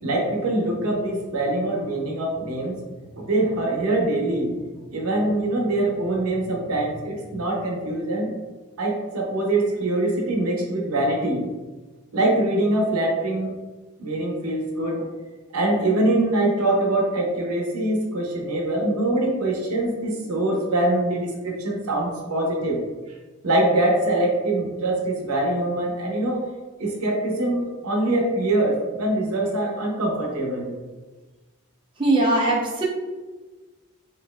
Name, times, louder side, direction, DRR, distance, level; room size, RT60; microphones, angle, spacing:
voice 1, 0.0-2.8 3.2-4.6 4.9-8.3 8.8-11.5 12.1-13.5 14.0-15.1 15.5-22.8 23.4-26.5 26.8-30.7, right 1 dB, 80° right, 0 dB, 0.7 m, -23 dB
voice 2, 32.0-32.8, right 2 dB, 20° right, -3 dB, 0.5 m, -20 dB
4.2 x 2.5 x 2.2 m, 1.2 s
head